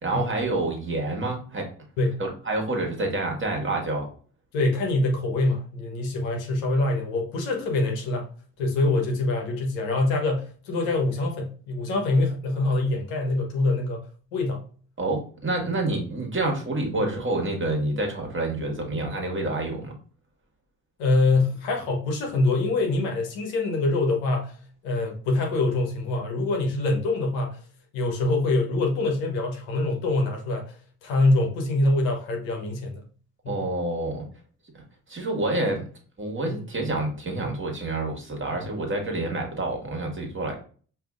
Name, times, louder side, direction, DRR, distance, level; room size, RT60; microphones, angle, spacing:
voice 1, 0.0-1.7 2.2-4.1 15.0-19.9 33.5-34.2 35.1-35.8 36.2-40.6, right 2 dB, 30° right, 1.6 m, -28 dB
voice 2, 4.5-8.3 8.6-14.7 21.0-24.6 24.8-27.6 27.9-33.0 33.4-33.7 36.4-36.6 38.5-38.6, left 2 dB, 85° left, 0.9 m, -25 dB
4.9 x 2.8 x 2.4 m
hypercardioid pair, 50°, 38 cm